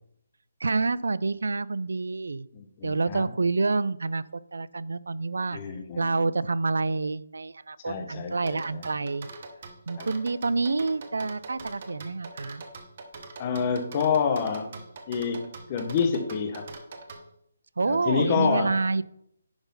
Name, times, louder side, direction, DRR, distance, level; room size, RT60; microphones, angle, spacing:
voice 1, 0.6-2.5 2.8-5.6 6.0-9.3 9.9-12.6 17.8-19.0, right 3 dB, 85° right, 18 dB, 0.4 m, -28 dB
voice 2, 2.5-3.3 5.5-6.1 7.8-8.8 10.0-10.1 13.4-14.7 15.1-16.7 17.8-18.7, left 6 dB, 20° left, 6 dB, 0.9 m, -28 dB
sound 1, 8.5-17.2, right 3 dB, 35° right, 1.0 m, -43 dB
10.5 x 3.9 x 5.5 m, 0.74 s
hypercardioid pair, 175°, 0 cm